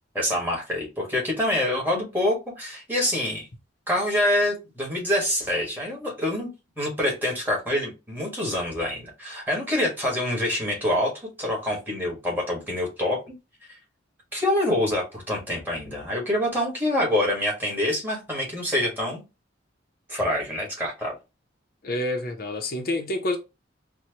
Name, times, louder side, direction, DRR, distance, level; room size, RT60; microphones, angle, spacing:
voice 1, 0.1-3.5 3.9-6.5 6.8-13.2 14.3-19.2 20.1-21.1, left 1 dB, 10° right, 1.4 m, -26 dB
voice 2, 21.8-23.4, left 1 dB, 50° left, 0.6 m, -28 dB
4.3 x 2.1 x 2.8 m
head